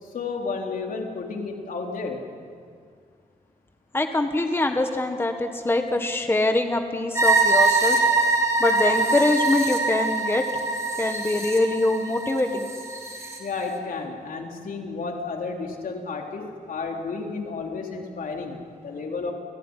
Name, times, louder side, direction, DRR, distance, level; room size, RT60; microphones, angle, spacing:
voice 1, 0.0-2.3 13.4-19.3, left 4 dB, 75° left, 1 dB, 3.9 m, -32 dB
voice 2, 3.9-8.0 8.6-10.4 11.0-12.7, left 2 dB, 15° left, 5 dB, 1.5 m, -23 dB
sound 1, 7.1-13.4, right 3 dB, 20° right, 4.0 m, -23 dB
29.0 x 18.5 x 10.0 m, 2.2 s
wide cardioid pair, 165°, 14 cm